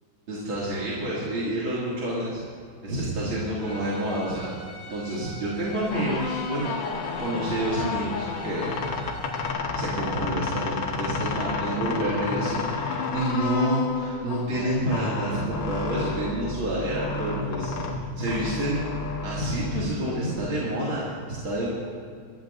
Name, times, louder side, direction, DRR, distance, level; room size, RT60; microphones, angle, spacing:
voice 1, 0.3-2.4 2.8-4.5 4.9-6.7 7.2-8.8 9.7-21.7, right 1 dB, 75° right, -8 dB, 3.3 m, -28 dB
Bowed string instrument, 3.5-9.5, right 1 dB, 45° left, 2.3 m, -43 dB
sound 1, 5.9-20.4, left 4 dB, 70° left, 2.0 m, -31 dB
22.0 x 14.0 x 2.6 m, 2.2 s
omnidirectional pair, 2.2 m